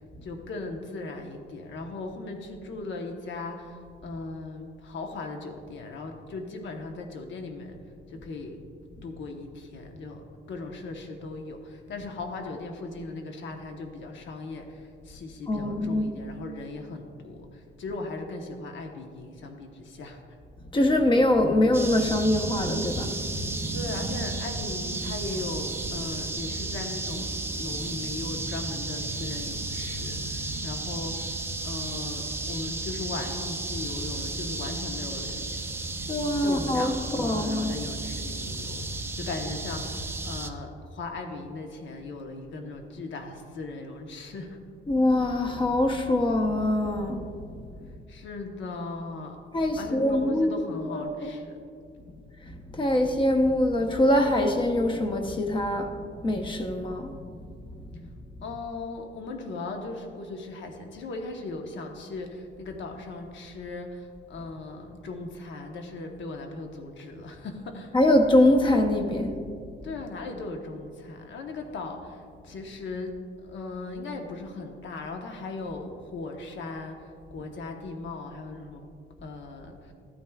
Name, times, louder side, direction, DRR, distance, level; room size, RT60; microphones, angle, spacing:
voice 1, 0.2-7.8 8.1-8.6 9.0-20.2 23.7-31.4 31.6-35.5 36.4-38.9 39.2-44.6 48.1-49.4 49.8-51.6 58.4-67.9 69.8-78.8 79.2-79.9, left 3 dB, 65° left, 3 dB, 1.0 m, -38 dB
voice 2, 15.5-16.1 20.7-23.2 36.1-37.8 44.9-47.3 49.5-51.3 52.4-56.0 56.2-57.2 67.9-69.4, left 1 dB, 25° left, 5 dB, 0.8 m, -24 dB
sound 1, 21.7-40.5, right 2 dB, 10° right, 0.4 m, -33 dB
15.0 x 9.0 x 2.3 m, 2.3 s
wide cardioid pair, 175°, 20 cm